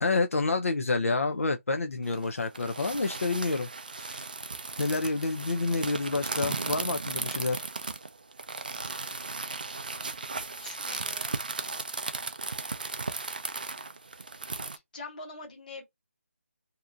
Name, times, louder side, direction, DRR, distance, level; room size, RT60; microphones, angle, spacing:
voice 1, 0.0-3.7 4.0-4.2 4.8-7.6, left 3 dB, 70° left, 0.6 m, -28 dB
sound 1, 2.1-14.8, right 3 dB, 35° right, 0.4 m, -36 dB
voice 2, 10.6-11.4 14.7-15.8, left 3 dB, 35° left, 1.3 m, -44 dB
2.8 x 2.5 x 3.4 m
hypercardioid pair, 180°, 8 cm